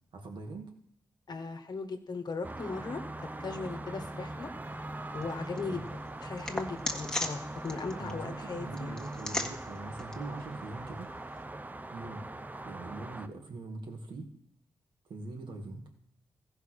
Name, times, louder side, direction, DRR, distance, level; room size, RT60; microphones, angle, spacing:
voice 1, 0.1-0.7 5.7-5.9 7.9-11.1 11.9-12.3 12.6-14.3 15.1-15.9, right 3 dB, 70° right, 2 dB, 2.2 m, -42 dB
voice 2, 1.3-3.0 3.4-4.5 5.1-5.8 6.2-9.0, left 4 dB, 55° left, 7 dB, 1.3 m, -38 dB
sound 1, 2.4-13.3, right 2 dB, 20° right, 0.7 m, -42 dB
sound 2, 4.6-11.4, left 1 dB, 10° left, 1.6 m, -41 dB
14.5 x 5.4 x 6.4 m, 0.69 s
cardioid pair, 60°, 8 cm